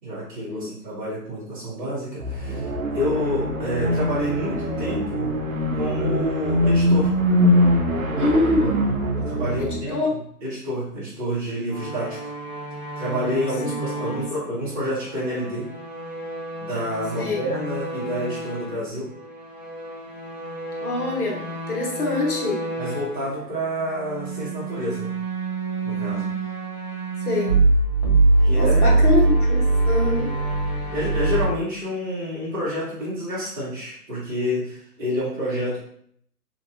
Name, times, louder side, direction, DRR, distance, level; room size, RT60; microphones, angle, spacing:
voice 1, 0.0-5.3 5.8-7.1 9.2-10.0 10.4-12.3 12.9-15.7 16.6-19.1 22.8-25.1 25.8-26.3 28.4-29.0 30.9-35.8, equal, 20° right, -10 dB, 1.5 m, -28 dB
sound 1, 2.2-9.8, equal, 55° right, 0.7 m, -22 dB
voice 2, 8.2-8.8 9.6-10.1 13.9-14.2 17.2-17.4 20.8-22.6 27.3-27.6 28.5-30.4, left 2 dB, 60° left, -3 dB, 1.3 m, -25 dB
sound 2, 11.7-18.8 19.1-23.2 23.8-31.5, right 2 dB, 25° left, 0.4 m, -25 dB
2.9 x 2.8 x 2.5 m, 0.66 s
figure-of-eight pair, 150°, 49 cm